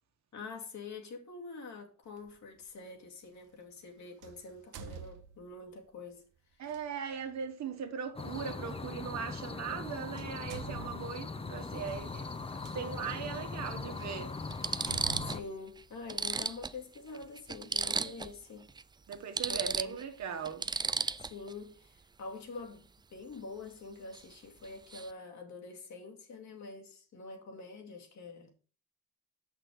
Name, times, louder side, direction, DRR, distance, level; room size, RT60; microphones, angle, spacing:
voice 1, 0.3-6.3 15.2-18.7 19.5-19.9 21.2-28.5, left 3 dB, 65° left, 2.3 m, -46 dB
sound 1, 2.1-2.3 4.2-5.7 6.6-6.8 8.7-8.8 9.7-9.9 10.1-12.7 13.4-13.5 14.0-14.1 14.7-16.5, right 6 dB, 90° right, 1.0 m, -48 dB
voice 2, 6.6-12.3 12.5-14.3 19.1-20.7, right 7 dB, 65° right, 1.5 m, -39 dB
sound 2, 8.2-15.4, left 4 dB, 20° left, 0.7 m, -40 dB
sound 3, 11.6-11.8 13.2-13.3 14.0-14.1 14.5-15.5 15.8-15.9 16.1-18.4 18.7-18.8 19.1-21.5 24.1-24.4 24.6-25.1, right 4 dB, 15° right, 0.3 m, -35 dB
6.5 x 5.9 x 4.8 m
cardioid pair, 90°, 30 cm